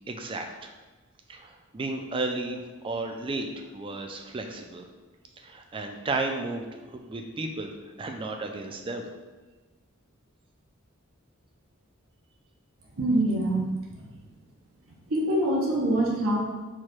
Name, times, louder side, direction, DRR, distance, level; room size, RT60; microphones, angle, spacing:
voice 1, 0.1-0.7 1.3-4.9 5.4-7.7 8.0-9.1, right 2 dB, 25° right, 4 dB, 0.4 m, -33 dB
voice 2, 13.0-13.7 15.1-16.4, right 1 dB, 80° right, -2 dB, 0.8 m, -24 dB
4.6 x 2.3 x 4.4 m, 1.2 s
head